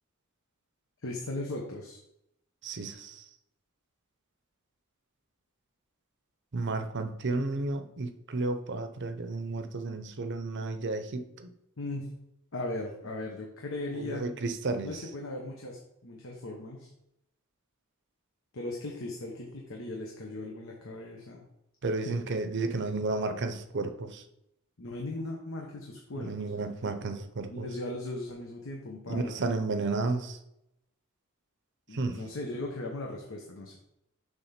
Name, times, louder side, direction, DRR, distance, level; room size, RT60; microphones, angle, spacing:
voice 1, 1.0-2.0 11.8-12.1 12.5-14.3 14.8-16.9 18.5-21.4 22.0-22.2 24.8-26.5 27.5-29.3 31.9-33.8, left 2 dB, 65° left, 0 dB, 1.0 m, -38 dB
voice 2, 2.6-3.1 6.5-11.5 14.1-14.9 21.8-24.2 26.3-27.7 29.1-30.4 31.9-32.2, right 3 dB, 55° right, 9 dB, 0.7 m, -32 dB
7.2 x 3.6 x 5.8 m, 0.82 s
head